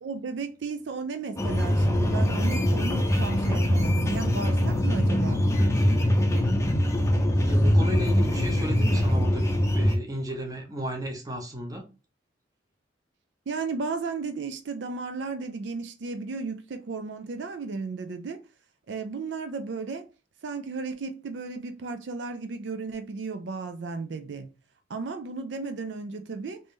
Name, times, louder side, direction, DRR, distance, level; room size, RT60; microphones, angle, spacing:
voice 1, 0.0-5.5 13.5-18.4 18.9-20.1 20.4-24.5 24.9-26.6, right 4 dB, 70° right, 0.4 m, -34 dB
sound 1, 1.4-10.0, equal, 15° left, 0.5 m, -23 dB
voice 2, 7.4-11.9, equal, 20° right, 0.8 m, -34 dB
3.5 x 2.6 x 3.2 m
head